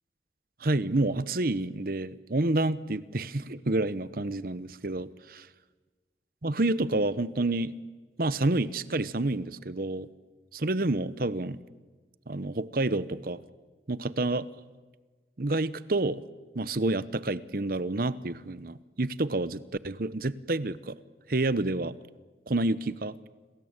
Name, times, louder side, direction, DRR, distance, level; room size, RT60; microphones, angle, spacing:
voice 1, 0.6-5.5 6.4-7.8 8.2-10.1 10.5-11.6 12.3-13.4 13.9-14.5 15.4-16.2 16.5-21.0 21.3-21.9 22.5-23.2, right 2 dB, 55° right, 17 dB, 0.9 m, -29 dB
29.5 x 20.5 x 8.9 m, 1.3 s
head